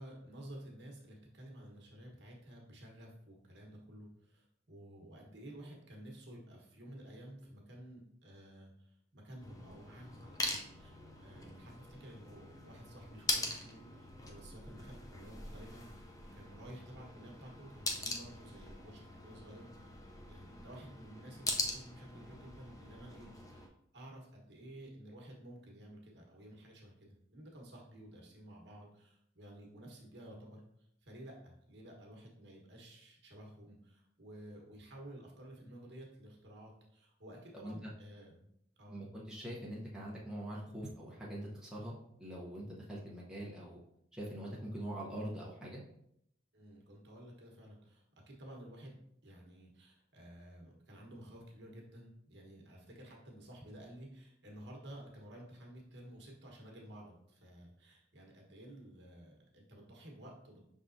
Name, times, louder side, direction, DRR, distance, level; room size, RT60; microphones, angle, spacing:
voice 1, 0.0-30.6 31.0-38.5 38.8-39.0 46.5-60.6, right 1 dB, 65° right, -1 dB, 1.1 m, -53 dB
sound 1, 9.4-23.7, left 2 dB, 20° left, 0.4 m, -42 dB
voice 2, 38.9-43.8 44.1-45.8, right 1 dB, 5° right, -6 dB, 0.8 m, -43 dB
5.6 x 3.6 x 2.6 m, 0.75 s
head